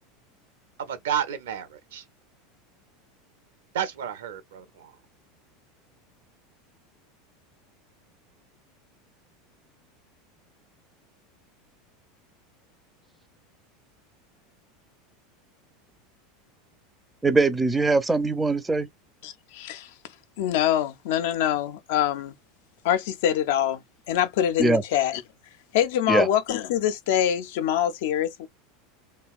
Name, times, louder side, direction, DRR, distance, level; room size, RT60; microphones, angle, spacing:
voice 1, 0.8-2.0 3.7-4.9, right 9 dB, 65° right, 0.6 m, -31 dB
voice 2, 17.2-18.9 24.6-24.8 26.1-26.3, right 3 dB, 10° right, 0.4 m, -21 dB
voice 3, 19.2-19.9 20.4-22.3 22.8-23.8 24.1-25.2 25.7-28.5, left 10 dB, 55° left, 0.4 m, -24 dB
2.8 x 2.1 x 2.3 m
figure-of-eight pair, 80°, 0 cm